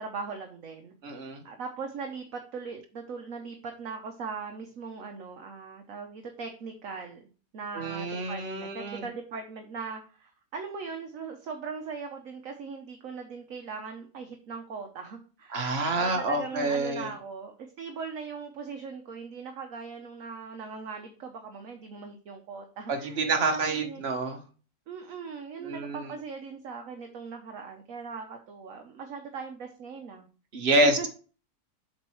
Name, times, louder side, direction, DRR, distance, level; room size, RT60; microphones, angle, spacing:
voice 1, 0.0-0.9 1.2-7.3 7.5-24.0 24.9-30.3 31.0-31.1, right 5 dB, 60° right, 5 dB, 1.2 m, -40 dB
voice 2, 1.0-1.4 7.7-9.0 15.5-17.1 22.9-24.4 25.6-26.1 30.5-31.1, right 2 dB, 40° right, 3 dB, 1.5 m, -27 dB
7.3 x 4.5 x 4.5 m, 0.38 s
omnidirectional pair, 1.7 m